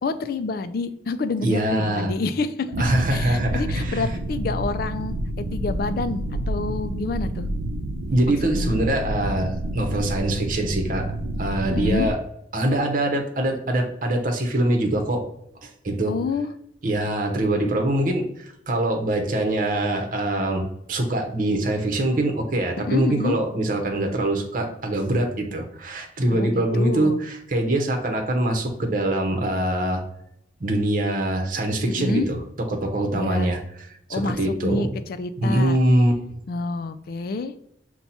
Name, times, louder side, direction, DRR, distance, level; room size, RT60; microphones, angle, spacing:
voice 1, 0.0-2.7 3.1-7.5 8.4-8.7 11.6-12.1 16.1-16.5 22.8-23.4 26.3-27.2 31.9-32.3 33.1-33.5 34.1-35.8 36.5-37.5, left 3 dB, 55° left, 11 dB, 0.3 m, -28 dB
voice 2, 1.4-2.1 2.8-4.0 8.1-11.1 11.4-12.2 12.5-15.2 15.6-16.2 16.8-30.0 30.6-33.6 34.1-34.9 35.4-36.2, right 1 dB, 50° right, 2 dB, 0.8 m, -23 dB
sound 1, 2.7-12.1, right 1 dB, 90° right, 0.4 m, -29 dB
5.8 x 2.2 x 4.1 m, 0.77 s
head